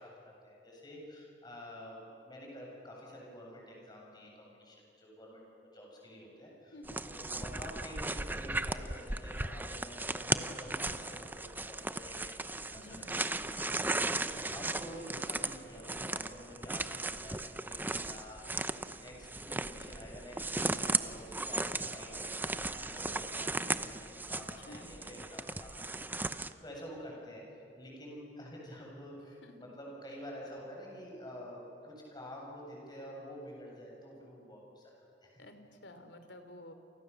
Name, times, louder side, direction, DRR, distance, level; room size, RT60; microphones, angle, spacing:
voice 1, 0.0-5.4 5.7-6.8 7.0-12.4 12.7-13.7 14.2-21.6 21.9-34.9 35.2-35.4, equal, 25° left, -2 dB, 7.5 m, -49 dB
sound 1, 6.9-26.5, right 2 dB, 10° right, 0.7 m, -36 dB
voice 2, 12.8-13.2 24.7-24.9 29.4-29.5 35.4-36.7, left 1 dB, 85° left, 8 dB, 3.0 m, -51 dB
29.0 x 28.5 x 7.1 m, 2.7 s
head